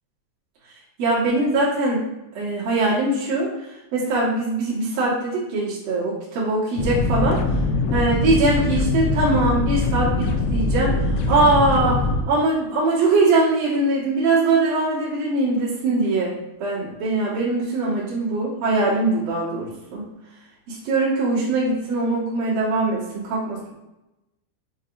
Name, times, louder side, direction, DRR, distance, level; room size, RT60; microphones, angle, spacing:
voice 1, 1.0-2.1 2.3-3.5 3.9-7.4 7.9-12.0 12.3-16.3 16.6-20.1 20.7-23.7, right 2 dB, 90° right, -8 dB, 1.4 m, -22 dB
sound 1, 6.8-12.2, left 2 dB, 85° left, 2.9 m, -22 dB
6.9 x 2.8 x 2.6 m, 0.96 s
omnidirectional pair, 5.3 m